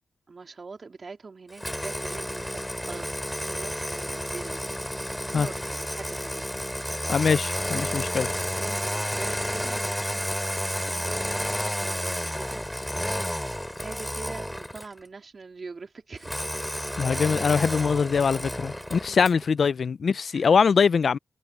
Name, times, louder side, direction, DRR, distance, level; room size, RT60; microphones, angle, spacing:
voice 1, 0.3-6.6 8.6-12.6 13.8-16.3 19.1-19.2 20.3-20.5, right 4 dB, 45° right, 3.3 m, -44 dB
Engine starting, 1.6-15.0 16.2-19.4, equal, 5° left, 3.2 m, -31 dB
voice 2, 7.1-8.3 17.0-21.2, left 6 dB, 60° left, 0.3 m, -23 dB
cardioid pair, 85°, 0 cm